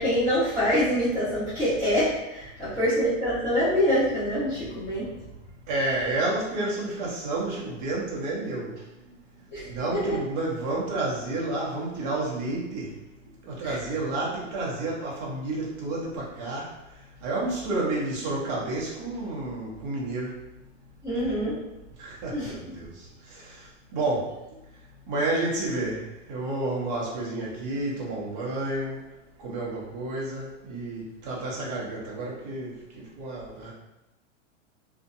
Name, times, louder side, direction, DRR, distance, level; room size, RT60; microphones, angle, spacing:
voice 1, 0.0-5.1 9.5-10.2 13.6-13.8 21.0-21.6 22.3-22.8, equal, ahead, -20 dB, 1.0 m, -25 dB
voice 2, 5.7-8.8 9.7-12.9 13.4-16.7 17.2-20.3 22.0-22.9 23.3-23.6 23.9-24.3 25.1-26.0 26.3-29.0 29.4-33.7, right 2 dB, 35° right, -5 dB, 0.7 m, -30 dB
2.6 x 2.1 x 2.5 m, 0.94 s
supercardioid pair, 170°, 37 cm